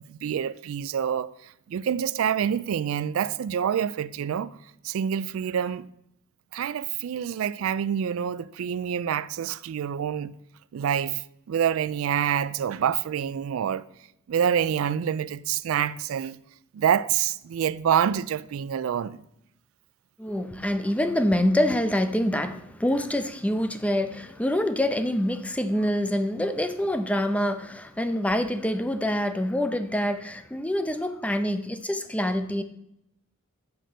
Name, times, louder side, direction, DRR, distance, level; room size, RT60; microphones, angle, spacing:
voice 1, 0.0-4.6 4.8-5.9 6.5-10.3 10.7-13.8 14.3-16.4 16.7-19.2, right 8 dB, 70° right, 0.3 m, -27 dB
voice 2, 20.2-32.6, left 1 dB, 5° left, 0.4 m, -26 dB
6.3 x 6.0 x 6.7 m
head